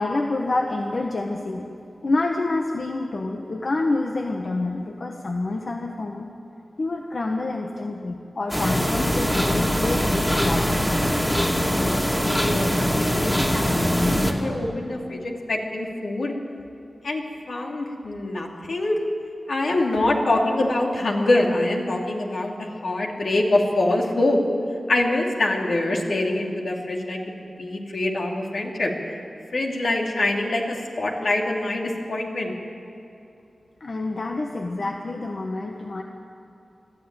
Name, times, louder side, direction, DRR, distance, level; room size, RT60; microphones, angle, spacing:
voice 1, 0.0-1.6 2.0-6.3 6.8-10.9 33.8-36.0, left 2 dB, 55° left, 2 dB, 1.3 m, -27 dB
sound 1, 8.5-14.3, equal, 10° left, 2.4 m, -22 dB
voice 2, 11.6-16.3 17.0-19.0 19.5-24.4 24.9-27.2 27.6-28.9 29.5-32.5, left 2 dB, 75° left, -1 dB, 3.0 m, -25 dB
21.5 x 14.0 x 9.0 m, 2.7 s
wide cardioid pair, 80°, 0 cm